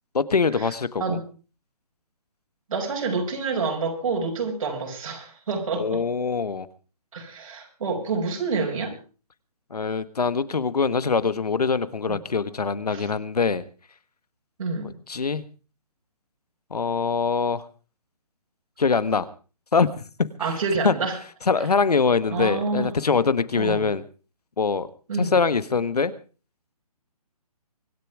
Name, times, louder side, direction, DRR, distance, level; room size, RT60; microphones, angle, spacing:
voice 1, 0.1-1.2 5.8-6.7 9.7-13.6 14.8-15.4 16.7-17.6 18.8-19.3 19.7-20.0 20.8-20.9 21.5-24.0 24.6-24.9 25.2-26.1, left 5 dB, 80° left, 15 dB, 1.5 m, -23 dB
voice 2, 2.7-6.0 7.1-8.9 12.1-12.2 12.9-13.1 14.6-15.0 20.4-21.2 22.3-22.9 23.6-23.9 25.1-25.3, right 4 dB, 60° right, 0 dB, 5.5 m, -28 dB
25.0 x 10.5 x 4.8 m, 0.37 s
hypercardioid pair, 150°, 20 cm